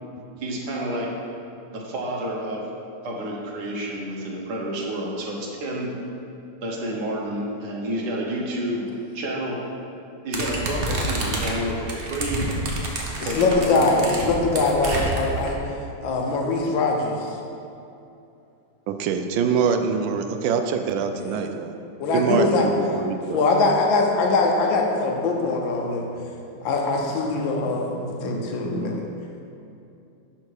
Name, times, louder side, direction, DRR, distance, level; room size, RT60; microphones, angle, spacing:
voice 1, 0.4-1.1 1.7-2.6 3.0-5.9 6.6-9.6 10.2-12.5 13.2-14.2, right 1 dB, 60° right, -2 dB, 1.7 m, -29 dB
sound 1, 10.3-15.5, right 1 dB, 45° right, 0.8 m, -28 dB
voice 2, 13.2-15.6 16.0-17.2 21.2-21.3 22.0-22.7 23.3-26.1 26.6-27.9 28.2-29.0, left 3 dB, 75° left, 1 dB, 1.6 m, -22 dB
voice 3, 18.9-21.8 22.1-23.5 26.6-26.7 27.1-27.2 27.6-27.8 28.0-29.0, right 6 dB, 75° right, 6 dB, 1.3 m, -25 dB
11.0 x 3.8 x 4.7 m, 2.7 s
omnidirectional pair, 2.1 m